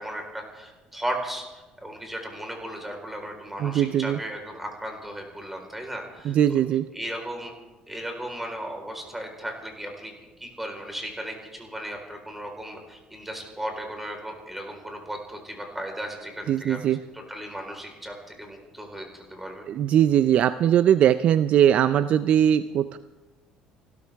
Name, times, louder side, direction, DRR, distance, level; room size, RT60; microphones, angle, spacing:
voice 1, 0.0-6.6 6.9-7.5 7.9-10.1 10.4-19.7, right 1 dB, 5° right, 2 dB, 4.1 m, -36 dB
voice 2, 3.6-4.2 6.2-6.9 16.5-17.0 19.7-23.0, right 10 dB, 55° right, 13 dB, 0.4 m, -20 dB
29.5 x 13.5 x 3.5 m, 1.1 s
cardioid pair, 110°, 3 cm